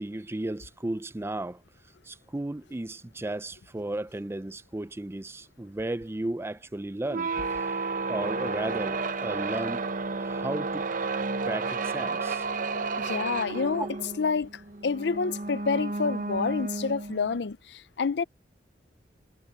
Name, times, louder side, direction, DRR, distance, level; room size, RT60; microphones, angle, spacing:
voice 1, 0.0-1.6 2.0-7.7 8.1-9.9 10.2-10.8 11.4-12.5 13.8-13.9, right 1 dB, 15° right, 0.4 m, -34 dB
sound 1, 7.0-17.4, right 3 dB, 50° right, 0.9 m, -32 dB
voice 2, 13.0-13.9 14.2-14.5 14.8-18.2, left 5 dB, 70° left, 0.5 m, -28 dB
head